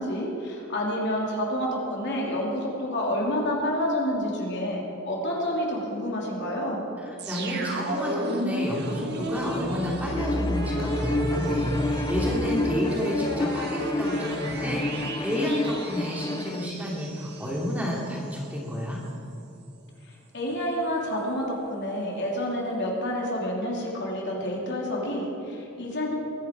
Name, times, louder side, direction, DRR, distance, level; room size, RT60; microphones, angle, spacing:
voice 1, 0.0-6.8 20.3-26.1, equal, 55° left, -2 dB, 3.2 m, -29 dB
voice 2, 7.0-19.0, equal, 5° right, -4 dB, 2.8 m, -30 dB
sound 1, 7.2-18.0 18.3-18.4, right 1 dB, 55° right, 1.7 m, -32 dB
Bowed string instrument, 10.1-16.7, left 2 dB, 20° left, 0.4 m, -30 dB
22.0 x 10.5 x 4.7 m, 2.8 s
head